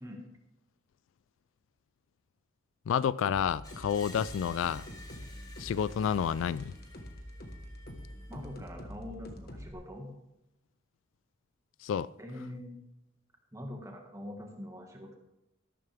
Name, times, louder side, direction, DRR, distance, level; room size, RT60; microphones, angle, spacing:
voice 1, 2.9-4.8 5.6-6.7 11.8-12.1, left 8 dB, 80° left, 0.3 m, -30 dB
sound 1, 3.2-9.7, equal, 50° left, 1.4 m, -46 dB
Screech, 3.6-8.6, left 2 dB, 20° left, 1.6 m, -53 dB
voice 2, 8.3-10.1 12.2-12.8 13.5-15.2, left 1 dB, 15° right, 1.8 m, -43 dB
13.0 x 12.0 x 3.5 m
head